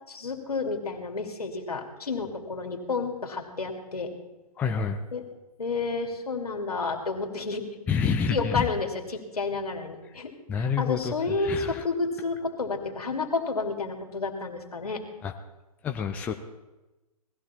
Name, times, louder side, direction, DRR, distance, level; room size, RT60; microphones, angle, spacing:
voice 1, 0.1-4.1 5.1-5.2 5.6-7.6 8.3-15.0, left 4 dB, 70° left, 3 dB, 2.6 m, -30 dB
voice 2, 4.6-5.0 7.9-8.7 10.5-11.8 15.2-15.3 15.8-16.3, left 6 dB, 10° left, 5 dB, 0.5 m, -28 dB
18.5 x 14.5 x 4.3 m, 1.1 s
figure-of-eight pair, 130°, 20 cm